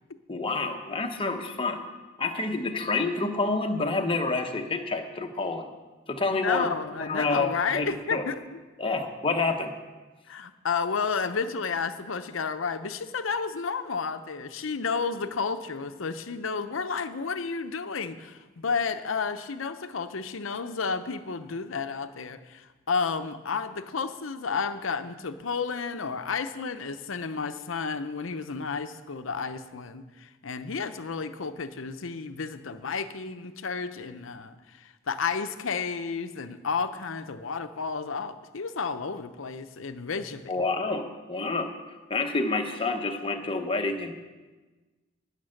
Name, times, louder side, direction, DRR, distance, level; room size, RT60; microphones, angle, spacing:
voice 1, 0.3-1.8 2.2-5.7 6.1-6.7 7.0-8.2 8.8-9.7 40.5-41.7 42.1-44.1, left 3 dB, 25° left, 4 dB, 1.0 m, -28 dB
voice 2, 6.3-8.6 10.3-40.4, left 5 dB, 70° left, 10 dB, 0.7 m, -31 dB
18.5 x 6.7 x 6.5 m, 1.3 s
head